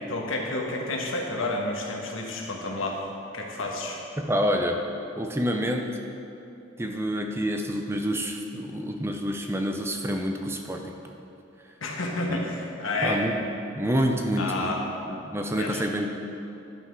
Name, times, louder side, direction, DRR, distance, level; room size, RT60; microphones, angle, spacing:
voice 1, 0.1-3.0 3.3-4.0 11.8-13.2 14.4-14.8 15.6-15.8, left 2 dB, 85° left, -1 dB, 1.4 m, -30 dB
voice 2, 4.2-4.8 5.2-5.9 6.8-11.1 12.3-12.4 13.0-13.4 13.7-14.7 15.1-16.1, equal, 10° right, 3 dB, 0.5 m, -28 dB
11.0 x 5.8 x 4.7 m, 2.8 s
head